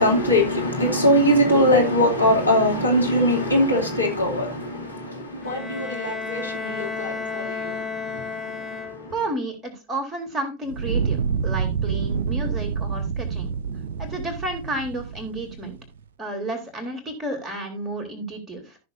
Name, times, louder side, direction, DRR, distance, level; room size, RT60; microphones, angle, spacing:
voice 1, 0.0-9.1, equal, 85° left, 2.6 m, -22 dB
Bowed string instrument, 5.4-9.4, left 5 dB, 15° left, 1.2 m, -32 dB
voice 2, 9.1-13.5 14.0-15.8 16.2-18.8, right 2 dB, 15° right, 3.6 m, -31 dB
Fire, 10.7-15.8, right 6 dB, 60° right, 0.8 m, -27 dB
14.0 x 6.6 x 2.6 m
figure-of-eight pair, 90°, 0 cm